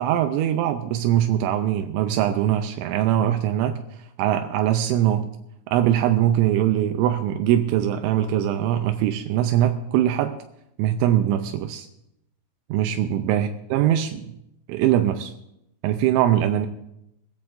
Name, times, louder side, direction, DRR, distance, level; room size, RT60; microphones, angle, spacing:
voice 1, 0.0-3.8 4.2-5.3 5.7-10.4 10.8-11.9 12.7-14.3 14.7-15.3 15.8-16.7, right 11 dB, 85° right, 7 dB, 3.0 m, -22 dB
20.5 x 14.5 x 2.6 m, 0.83 s
omnidirectional pair, 5.4 m